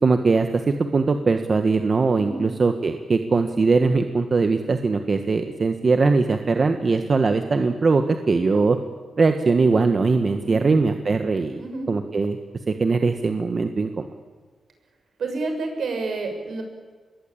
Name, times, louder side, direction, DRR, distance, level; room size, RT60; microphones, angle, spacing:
voice 1, 0.0-8.8 9.2-11.6 11.9-12.4 12.7-14.1, right 4 dB, 40° right, 7 dB, 1.5 m, -21 dB
voice 2, 10.4-10.7 11.6-11.9 15.2-16.6, right 3 dB, 75° right, 4 dB, 6.6 m, -29 dB
26.5 x 21.0 x 8.7 m, 1.5 s
cardioid pair, 100°, 0 cm